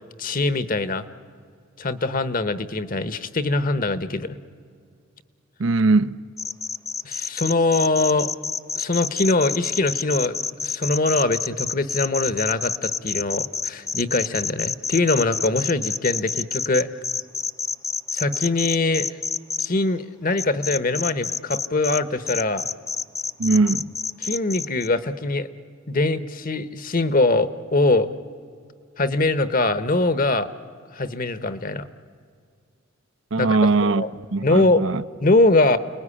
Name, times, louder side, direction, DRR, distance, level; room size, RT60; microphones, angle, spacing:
voice 1, 0.2-1.1 1.8-4.4 7.0-8.3 8.8-10.4 10.6-16.9 18.1-19.1 19.6-22.7 24.2-25.5 25.9-28.1 29.0-30.5 30.9-31.9 33.4-34.1 34.4-34.9 35.2-35.8, left 2 dB, 45° left, 1.1 m, -22 dB
voice 2, 5.6-6.2 23.4-23.9 33.3-34.0 34.3-35.0, right 3 dB, 70° right, 0.7 m, -20 dB
sound 1, 6.4-19.7 20.4-22.0 22.3-24.9, left 5 dB, 15° left, 0.6 m, -28 dB
29.5 x 20.0 x 9.9 m
head